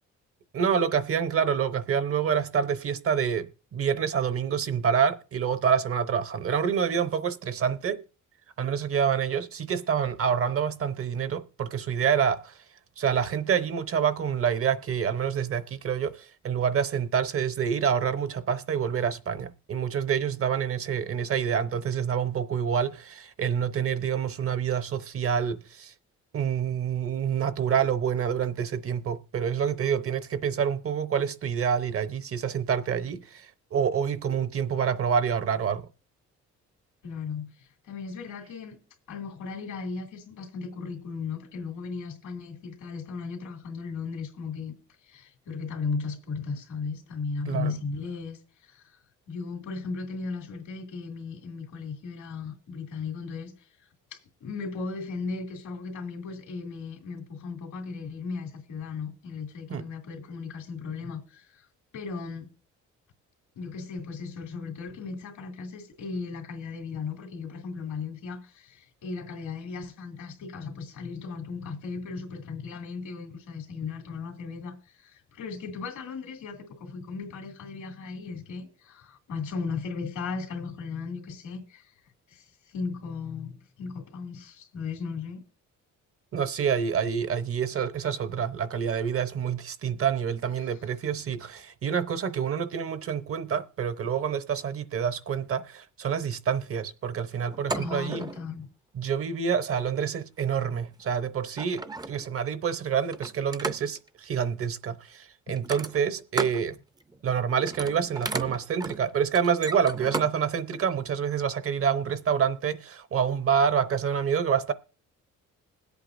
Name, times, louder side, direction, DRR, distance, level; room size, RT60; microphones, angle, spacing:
voice 1, 0.5-8.0 8.6-12.6 13.0-25.9 26.3-35.9 47.5-47.8 59.7-59.8 86.3-98.2 98.9-106.8 107.2-114.7, right 7 dB, 50° right, 0.8 m, -27 dB
voice 2, 37.0-37.5 37.9-38.8 39.1-44.7 45.1-48.8 49.3-53.5 54.1-61.6 61.9-62.5 63.6-81.9 82.3-82.5 82.7-85.4 90.6-90.7 97.7-98.6 105.5-105.6, left 4 dB, 90° left, 2.6 m, -36 dB
sound 1, 97.5-98.5 99.6-99.9 101.0-101.1 101.5-102.4 103.1-104.1 105.6-106.6 107.0-107.3 107.6-110.3 110.7-110.8, right 3 dB, 15° right, 0.5 m, -34 dB
20.5 x 8.3 x 2.6 m
cardioid pair, 90°, 30 cm